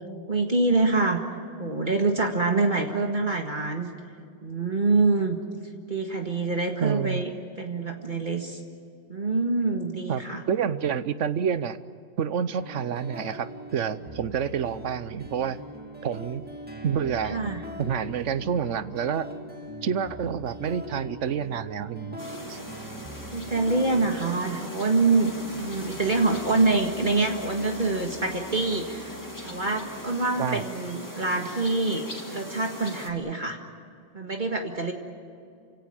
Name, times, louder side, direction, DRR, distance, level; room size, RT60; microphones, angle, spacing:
voice 1, 0.3-1.2 1.6-3.9 4.4-5.4 5.9-7.3 7.6-8.6 9.1-10.4 17.2-17.6 23.3-25.3 25.6-29.2 29.4-33.6 34.1-34.9, right 3 dB, 40° right, 3 dB, 1.9 m, -25 dB
voice 2, 6.8-7.2 10.1-11.8 12.2-15.6 16.0-16.4 16.8-19.3 19.8-22.2 22.5-22.6 30.4-30.6, right 7 dB, 90° right, 14 dB, 1.2 m, -28 dB
sound 1, 12.6-30.6, equal, 10° right, 2.4 m, -43 dB
sound 2, 22.2-33.1, left 1 dB, 15° left, 2.3 m, -40 dB
29.0 x 17.0 x 8.9 m, 2.4 s
omnidirectional pair, 1.2 m